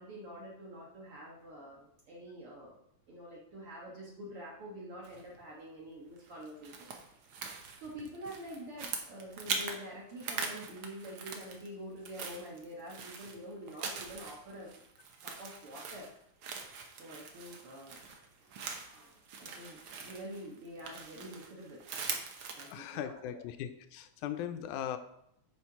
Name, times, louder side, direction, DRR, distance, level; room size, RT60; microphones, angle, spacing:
voice 1, 0.0-2.8 3.1-6.9 7.8-14.8 15.2-16.1 17.0-21.8 22.6-23.2, equal, 55° right, -4 dB, 1.8 m, -47 dB
sound 1, 5.0-5.4 6.2-9.8 10.1-11.7 12.0-22.7, right 5 dB, 75° right, 1.2 m, -42 dB
voice 2, 22.7-25.0, left 10 dB, 80° left, 9 dB, 2.0 m, -39 dB
9.8 x 4.5 x 4.6 m, 0.75 s
omnidirectional pair, 3.6 m